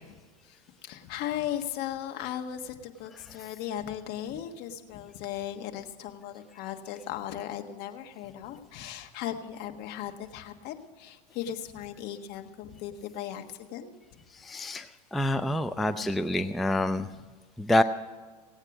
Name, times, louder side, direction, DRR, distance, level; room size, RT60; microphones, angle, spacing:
voice 1, 0.4-13.9 15.3-15.4 16.0-16.1 17.1-17.3, left 11 dB, 50° left, 6 dB, 1.5 m, -37 dB
voice 2, 14.4-14.9 15.1-17.1 17.6-17.8, left 1 dB, ahead, 9 dB, 0.3 m, -26 dB
17.5 x 8.8 x 6.0 m, 1.4 s
supercardioid pair, 125°, 21 cm